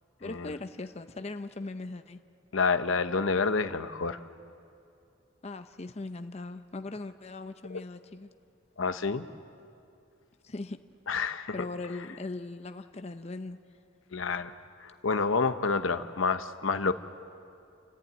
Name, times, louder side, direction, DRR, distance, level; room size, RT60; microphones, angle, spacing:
voice 1, 0.2-2.2 5.4-8.3 10.4-10.8 11.5-13.6, left 2 dB, 35° left, 8 dB, 0.6 m, -39 dB
voice 2, 2.5-4.2 7.7-7.8 8.8-9.3 11.1-11.6 14.1-14.5 14.8-16.9, left 4 dB, 85° left, 10 dB, 0.9 m, -28 dB
29.5 x 14.0 x 9.0 m, 2.5 s
head